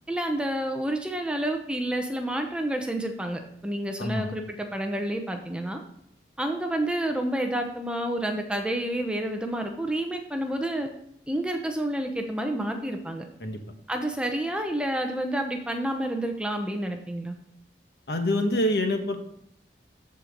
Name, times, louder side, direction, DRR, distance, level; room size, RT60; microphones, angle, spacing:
voice 1, 0.1-5.8 6.4-10.9 11.3-13.3 13.9-17.4, right 1 dB, 5° right, 4 dB, 0.8 m, -29 dB
voice 2, 18.1-19.2, left 1 dB, 60° left, 5 dB, 1.4 m, -25 dB
13.5 x 4.6 x 5.1 m, 0.74 s
head